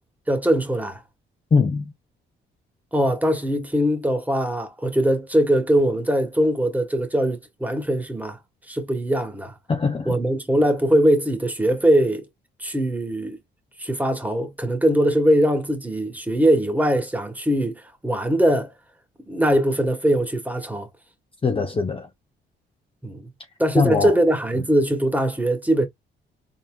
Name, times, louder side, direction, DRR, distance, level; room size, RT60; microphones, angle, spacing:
voice 1, 0.3-1.0 2.9-8.4 8.7-9.5 10.1-12.2 12.6-13.4 13.8-18.7 19.3-20.9 23.0-23.2 23.6-25.8, right 1 dB, 10° right, 1.4 m, -21 dB
voice 2, 1.5-1.9 9.7-10.2 21.4-22.1 23.7-24.2 24.5-24.6, left 4 dB, 25° left, 0.7 m, -22 dB
3.9 x 3.7 x 2.3 m
cardioid pair, 90°, 20 cm